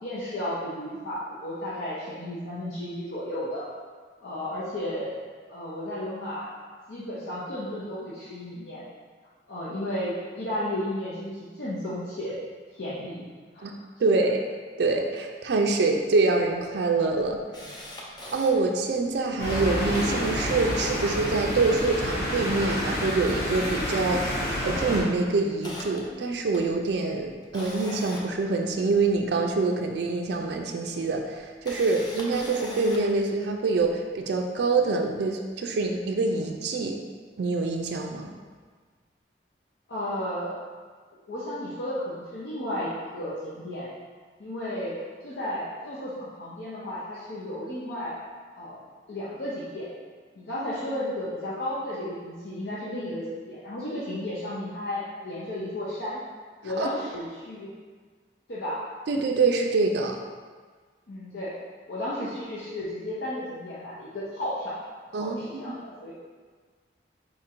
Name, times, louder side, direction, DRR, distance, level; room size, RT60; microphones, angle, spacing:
voice 1, 0.0-3.7 4.2-5.2 5.5-6.5 6.9-8.8 9.5-12.4 12.8-13.3 13.5-13.7 14.1-14.3 17.6-17.7 39.9-40.5 41.3-43.9 44.4-44.9 45.2-48.2 48.6-49.9 50.3-56.2 56.6-57.7 58.5-58.8 61.1-61.5 61.9-64.8 65.1-66.1, left 1 dB, 75° left, -9 dB, 0.7 m, -33 dB
voice 2, 14.0-14.4 14.8-17.4 18.3-37.0 37.4-38.3 56.8-56.9 59.1-60.2 65.1-65.8, right 3 dB, 65° right, 2 dB, 0.3 m, -25 dB
Camera, 15.9-16.0 16.3-16.4 16.9-18.5 19.1-19.2 19.5-21.1 21.5-22.7 23.1-24.3 24.5-24.8 25.2-29.3 30.3-30.4 31.4-33.2 33.7-33.9, left 1 dB, 25° left, 0.5 m, -42 dB
sound 1, 19.4-25.0, equal, 50° left, 1.4 m, -29 dB
4.3 x 2.5 x 4.3 m, 1.5 s
head